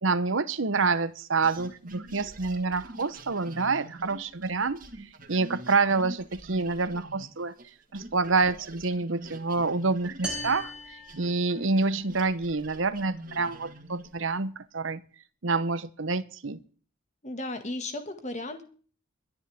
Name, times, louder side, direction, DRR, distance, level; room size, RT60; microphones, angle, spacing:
voice 1, 0.0-4.8 5.3-7.5 7.9-15.0 15.4-16.6, right 4 dB, 65° right, 14 dB, 0.9 m, -27 dB
sound 1, 1.4-7.7 7.9-14.2, right 1 dB, 40° right, 1.9 m, -45 dB
sound 2, 10.2-12.0, equal, 5° right, 3.4 m, -38 dB
voice 2, 17.2-18.6, left 2 dB, 35° left, 7 dB, 1.9 m, -35 dB
22.5 x 10.0 x 3.6 m, 0.41 s
head